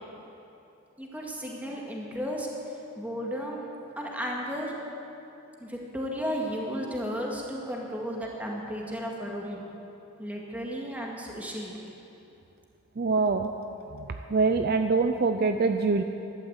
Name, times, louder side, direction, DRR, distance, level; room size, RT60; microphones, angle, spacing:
voice 1, 1.0-2.5 3.0-3.7 4.0-4.8 5.6-9.6 10.2-11.8, equal, 5° right, -2 dB, 1.9 m, -34 dB
voice 2, 13.0-13.5 14.0-16.0, right 4 dB, 45° right, 6 dB, 0.5 m, -24 dB
12.5 x 12.0 x 8.1 m, 2.9 s
head